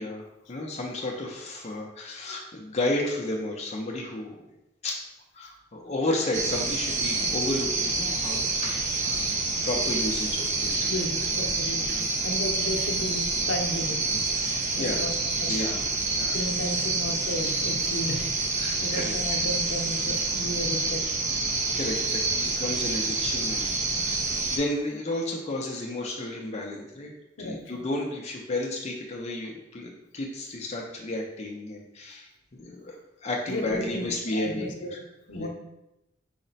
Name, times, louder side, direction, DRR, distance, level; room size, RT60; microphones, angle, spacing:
voice 1, 0.0-4.5 4.8-5.0 5.3-9.3 9.6-11.0 11.9-12.0 14.1-15.0 15.5-16.4 18.6-19.1 21.4-24.2 24.5-27.1 27.4-35.0 35.3-35.5, left 1 dB, 35° left, 0 dB, 0.5 m, -32 dB
sound 1, 6.3-24.6, right 3 dB, 40° right, 0.5 m, -27 dB
voice 2, 10.9-14.0 14.7-15.1 15.4-15.7 16.3-18.2 18.8-21.0 27.4-27.9 33.5-35.0 35.3-35.5, equal, 80° left, 2 dB, 0.6 m, -34 dB
4.8 x 2.1 x 3.9 m, 0.90 s
head